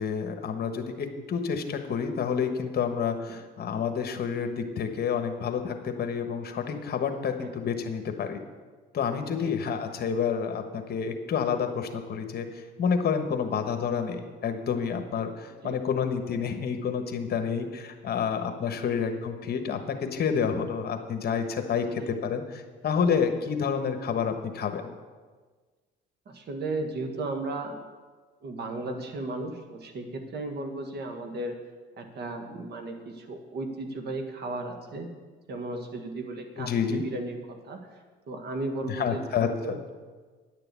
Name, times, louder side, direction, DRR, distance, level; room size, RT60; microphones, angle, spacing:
voice 1, 0.0-8.4 8.9-12.5 12.8-24.9 36.6-37.0 38.8-39.8, left 6 dB, 50° left, 7 dB, 1.3 m, -29 dB
voice 2, 26.3-27.8 28.4-31.5 32.0-35.1 35.5-37.4 37.6-38.0 38.3-39.9, right 2 dB, 55° right, 5 dB, 1.8 m, -35 dB
10.0 x 6.8 x 8.3 m, 1.4 s
cardioid pair, 95°, 21 cm